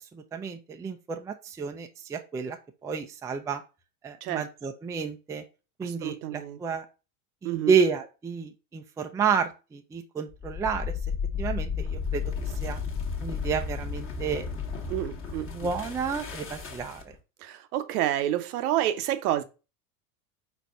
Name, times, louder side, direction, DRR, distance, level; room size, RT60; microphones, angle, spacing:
voice 1, 0.1-3.6 4.0-5.4 5.8-6.9 7.4-10.9 11.4-12.2 12.6-12.8 13.2-14.5 15.5-17.1, right 6 dB, 10° right, 0.3 m, -30 dB
voice 2, 5.8-6.6 7.4-7.7 14.9-15.7 17.4-19.4, right 13 dB, 75° right, 0.8 m, -29 dB
sound 1, 10.3-17.2, left 6 dB, 30° left, 1.2 m, -33 dB
4.7 x 4.3 x 2.5 m
supercardioid pair, 110°, 45 cm